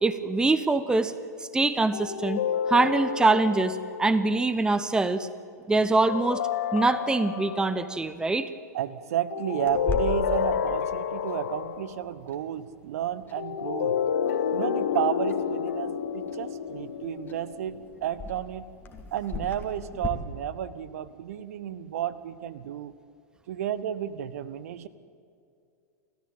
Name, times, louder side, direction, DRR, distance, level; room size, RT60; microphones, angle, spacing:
voice 1, 0.0-1.1 1.5-2.4 2.7-5.3 5.7-6.4 6.7-8.5, right 3 dB, 10° right, 14 dB, 0.9 m, -24 dB
sound 1, 1.9-4.4 6.1-7.9 9.3-12.0 13.4-17.9, left 8 dB, 60° left, 1.5 m, -30 dB
voice 2, 8.7-14.0 14.5-18.7 19.1-22.9 23.5-24.9, right 11 dB, 55° right, 16 dB, 1.1 m, -32 dB
Clock, 9.6-20.1, left 2 dB, 20° left, 2.5 m, -40 dB
29.5 x 14.0 x 8.9 m, 2.4 s
figure-of-eight pair, 90°, 9 cm